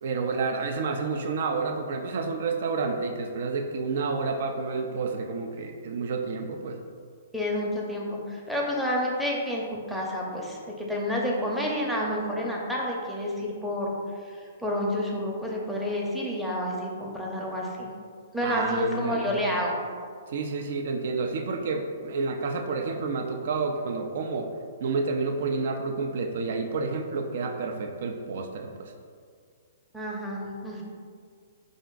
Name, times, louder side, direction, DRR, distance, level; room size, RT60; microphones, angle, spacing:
voice 1, 0.0-6.8 18.4-19.4 20.3-24.5 24.8-28.9, right 4 dB, 60° right, 4 dB, 0.4 m, -30 dB
voice 2, 7.3-13.9 14.2-17.9 18.3-19.8 29.9-30.8, left 1 dB, ahead, -4 dB, 0.7 m, -29 dB
4.3 x 2.5 x 3.8 m, 2.1 s
hypercardioid pair, 125°, 0 cm